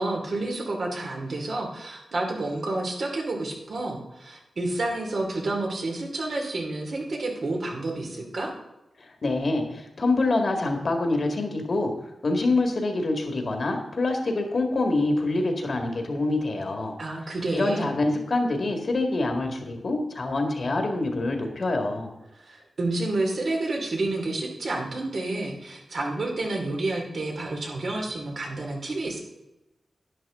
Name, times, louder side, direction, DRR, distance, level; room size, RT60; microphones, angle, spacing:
voice 1, 0.0-8.5 17.0-17.9 22.4-29.2, right 2 dB, 55° right, 0 dB, 2.5 m, -29 dB
voice 2, 9.0-16.9 17.2-22.1, left 2 dB, 50° left, 3 dB, 1.9 m, -26 dB
11.0 x 10.0 x 3.7 m, 0.95 s
wide cardioid pair, 135°, 0 cm